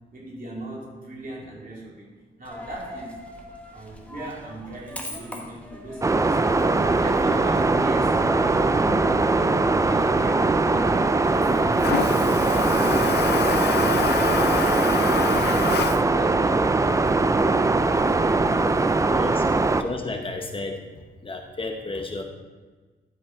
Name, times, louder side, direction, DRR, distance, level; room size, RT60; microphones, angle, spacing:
voice 1, 0.1-2.1 2.4-3.2 3.7-6.5 6.8-13.3 13.6-17.8, right 2 dB, 50° right, -4 dB, 2.9 m, -39 dB
Coin (dropping), 2.4-19.1, left 1 dB, 5° left, 1.4 m, -44 dB
sound 1, 6.0-19.8, right 3 dB, 15° right, 0.4 m, -21 dB
Toilet flush, 6.6-18.8, left 7 dB, 65° left, 0.5 m, -31 dB
voice 2, 19.1-19.4 19.8-20.8 21.2-22.2, left 3 dB, 30° left, 4 dB, 0.9 m, -32 dB
12.0 x 5.3 x 4.5 m, 1.3 s
wide cardioid pair, 115°, 18 cm